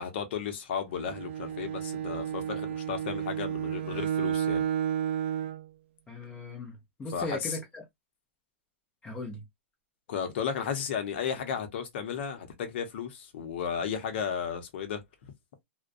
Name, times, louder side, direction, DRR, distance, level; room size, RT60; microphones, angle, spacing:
voice 1, 0.0-4.6 7.1-7.6 10.1-15.0, left 7 dB, 60° left, 0.8 m, -34 dB
Bowed string instrument, 0.9-5.7, right 9 dB, 60° right, 0.4 m, -32 dB
voice 2, 6.1-7.8 9.0-9.4, left 2 dB, 15° left, 0.7 m, -38 dB
2.3 x 2.2 x 2.5 m
hypercardioid pair, 140°, 7 cm